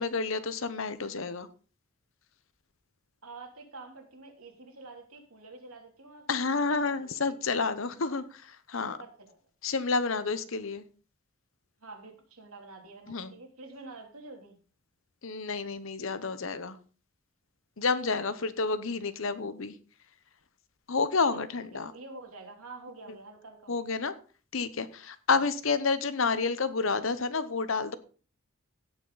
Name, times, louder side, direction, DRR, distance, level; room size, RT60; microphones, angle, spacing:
voice 1, 0.0-1.5 6.3-8.2 8.7-9.0 9.6-10.8 13.1-13.3 15.2-16.8 17.8-19.7 20.9-21.9 23.7-24.1 24.5-27.9, left 4 dB, 65° left, 13 dB, 0.9 m, -29 dB
voice 2, 3.2-7.6 8.1-8.3 9.0-9.4 11.8-14.6 18.3-18.5 21.3-21.5 21.9-23.7 25.3-25.5, right 3 dB, 80° right, 2 dB, 3.0 m, -48 dB
16.5 x 5.9 x 4.0 m, 0.37 s
head